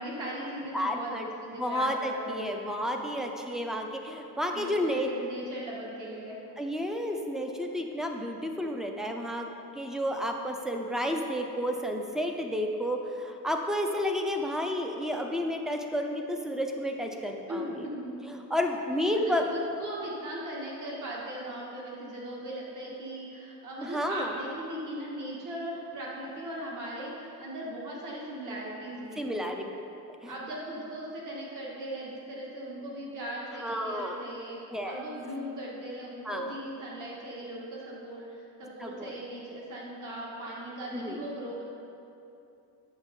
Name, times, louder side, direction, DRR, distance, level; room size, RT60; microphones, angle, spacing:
voice 1, 0.0-2.9 4.5-6.4 17.5-18.3 19.2-29.4 30.3-41.6, right 1 dB, 55° right, -4 dB, 2.1 m, -39 dB
voice 2, 0.7-5.1 6.6-9.5 9.8-17.7 18.3-19.4 23.8-24.3 29.2-29.6 30.2-30.3 33.6-34.2 34.7-35.0 36.3-36.5 38.8-39.1 40.9-41.2, equal, ahead, 3 dB, 0.5 m, -31 dB
8.7 x 6.8 x 4.3 m, 2.7 s
cardioid pair, 145°, 38 cm